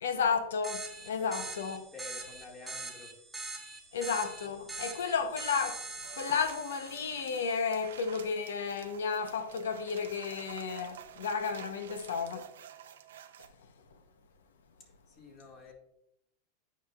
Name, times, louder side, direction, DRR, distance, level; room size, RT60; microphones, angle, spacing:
voice 1, 0.0-1.8 3.9-5.8 6.2-12.5, left 5 dB, 90° left, 0.8 m, -32 dB
sound 1, 0.6-7.8, right 3 dB, 5° right, 1.3 m, -43 dB
voice 2, 1.2-1.5 1.9-3.1 14.8-15.7, left 3 dB, 35° left, 2.0 m, -50 dB
sound 2, 6.0-13.5, right 10 dB, 85° right, 0.5 m, -51 dB
8.6 x 5.6 x 2.3 m
hypercardioid pair, 120°, 0 cm